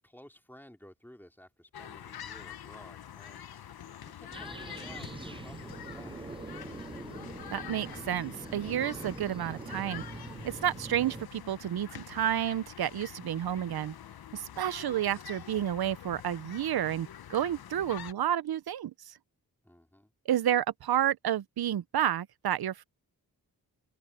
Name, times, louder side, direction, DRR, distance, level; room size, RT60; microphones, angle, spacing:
voice 1, 0.0-3.4 3.9-6.4 19.6-20.1, left 1 dB, 5° left, 2.6 m, -54 dB
sound 1, 1.7-18.1, left 9 dB, 80° left, 0.8 m, -46 dB
sound 2, 4.3-11.2, right 3 dB, 15° right, 0.3 m, -43 dB
voice 2, 7.5-10.0 10.4-13.9 14.3-19.1 20.3-22.8, right 11 dB, 80° right, 0.6 m, -30 dB
open air
wide cardioid pair, 140°, 37 cm